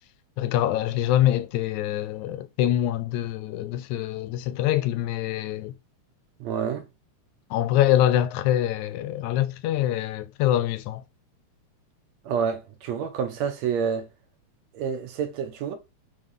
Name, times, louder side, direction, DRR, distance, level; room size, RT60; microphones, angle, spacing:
voice 1, 0.4-5.7 7.5-11.0, left 12 dB, 85° left, 2.0 m, -24 dB
voice 2, 6.4-6.9 12.2-14.1 14.7-15.8, right 7 dB, 70° right, 2.2 m, -28 dB
5.6 x 3.8 x 5.4 m
omnidirectional pair, 3.3 m